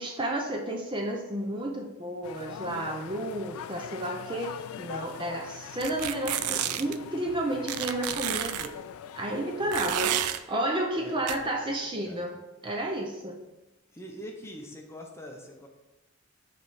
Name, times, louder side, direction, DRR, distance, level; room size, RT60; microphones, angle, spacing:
voice 1, 0.0-8.7 9.2-12.4 12.6-13.4, right 1 dB, 20° right, 0 dB, 0.5 m, -32 dB
sound 1, 2.2-9.7, left 8 dB, 75° left, 0.3 m, -42 dB
sound 2, 5.8-7.0 7.7-8.7 9.7-10.4 11.3-11.4, right 11 dB, 85° right, 0.4 m, -30 dB
voice 2, 10.9-11.5 11.8-12.2 13.9-15.7, equal, 10° left, 1 dB, 0.7 m, -44 dB
6.6 x 3.3 x 5.6 m, 1.0 s
head